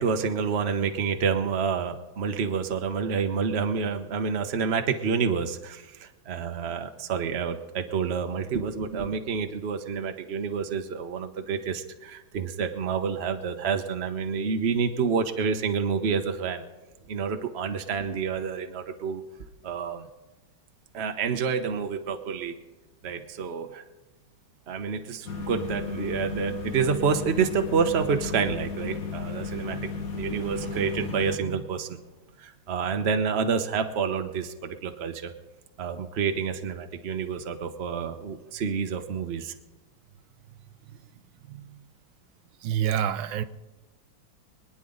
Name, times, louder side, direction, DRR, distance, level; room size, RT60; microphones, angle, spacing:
voice 1, 0.0-16.6 17.1-19.2 19.6-20.1 20.9-22.5 23.0-23.8 24.7-32.0 32.4-35.3 35.8-39.5, right 6 dB, 40° right, 7 dB, 1.1 m, -28 dB
sound 1, 25.3-31.4, left 6 dB, 50° left, 1.4 m, -35 dB
voice 2, 41.5-41.8 42.6-43.4, right 10 dB, 90° right, 12 dB, 1.5 m, -27 dB
24.5 x 10.0 x 3.9 m, 1.2 s
omnidirectional pair, 2.2 m